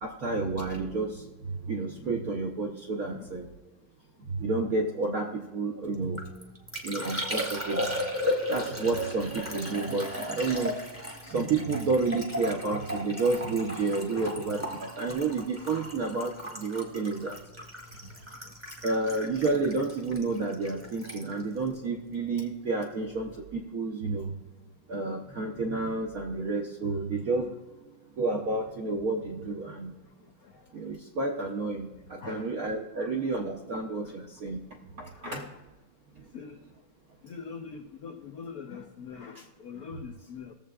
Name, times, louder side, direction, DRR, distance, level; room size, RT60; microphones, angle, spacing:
voice 1, 0.0-3.5 4.3-6.2 6.8-7.9 8.5-10.7 11.3-17.4 18.8-24.3 24.9-27.5 28.2-29.9 30.7-34.6 35.0-35.4, right 3 dB, 75° right, 1 dB, 0.8 m, -30 dB
Liquid, 5.9-22.6 22.8-23.4, left 1 dB, 10° right, 0.7 m, -36 dB
voice 2, 18.0-18.5 30.4-30.6 32.2-32.5 33.0-33.1 34.0-34.2 35.1-35.6 36.3-36.6 37.2-40.5, left 6 dB, 85° left, 4 dB, 0.8 m, -43 dB
19.0 x 7.4 x 2.3 m, 1.3 s
omnidirectional pair, 2.4 m